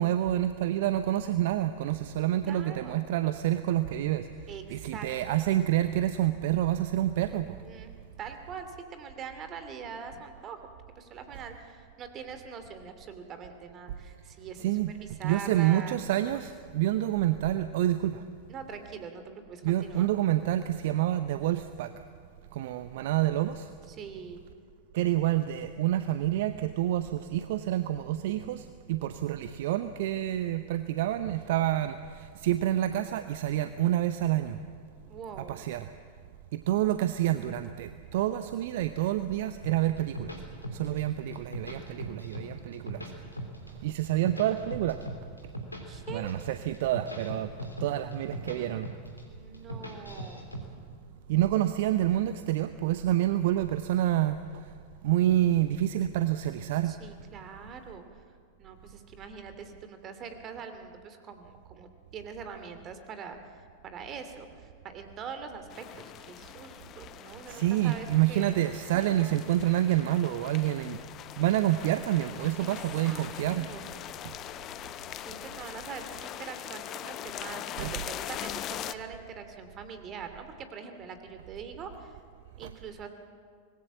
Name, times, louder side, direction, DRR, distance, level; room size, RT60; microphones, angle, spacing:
voice 1, 0.0-4.3 4.7-7.6 14.6-18.2 19.6-21.9 22.5-23.7 24.9-34.6 35.5-35.9 36.5-40.4 40.7-43.1 43.8-45.0 46.1-47.5 47.8-48.9 51.3-54.7 55.0-57.0 67.5-71.0 71.4-73.7 74.2-74.3 77.8-77.9 82.6-82.7, right 13 dB, 55° right, 11 dB, 0.8 m, -28 dB
voice 2, 2.5-3.1 4.5-5.1 5.3-5.4 7.6-10.6 11.0-16.0 16.3-16.4 18.5-20.1 23.9-24.5 35.0-35.7 40.9-41.0 45.9-46.3 49.3-50.5 56.8-58.0 58.6-63.4 63.8-68.6 68.9-69.4 72.6-73.2 73.6-73.9 75.3-82.2 82.6-83.1, right 6 dB, 30° right, 8 dB, 2.7 m, -43 dB
sound 1, 39.6-41.0 41.3-42.5 42.7-43.7 44.0-45.8 46.1-46.4 46.7-48.6 48.8-49.2 49.5-50.6, equal, 85° left, 3.3 m, -39 dB
sound 2, 65.7-78.9, left 12 dB, 35° left, 0.8 m, -42 dB
25.0 x 20.5 x 7.4 m, 2.1 s
figure-of-eight pair, 90°, 0 cm